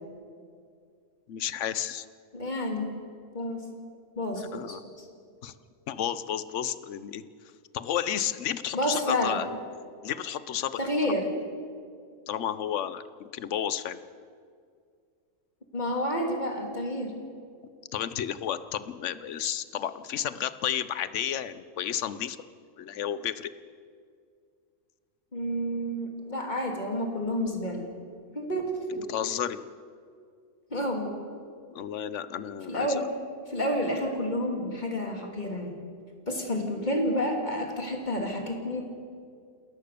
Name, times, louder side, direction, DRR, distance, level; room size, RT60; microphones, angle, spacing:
voice 1, 1.3-2.0 4.5-4.8 5.4-5.5 5.9-7.2 7.7-9.5 10.0-10.8 12.3-14.0 17.9-22.4 22.8-23.5 28.9-29.6 31.7-33.0, left 10 dB, 65° left, 14 dB, 1.1 m, -32 dB
voice 2, 2.3-2.9 3.3-3.7 4.1-5.1 8.7-9.4 10.8-11.3 15.7-17.1 25.3-27.9 28.3-29.1 30.7-31.3 32.7-33.1 33.5-35.8 36.3-38.8, left 1 dB, 30° left, 2 dB, 3.0 m, -30 dB
29.0 x 13.5 x 6.7 m, 2.2 s
omnidirectional pair, 1.5 m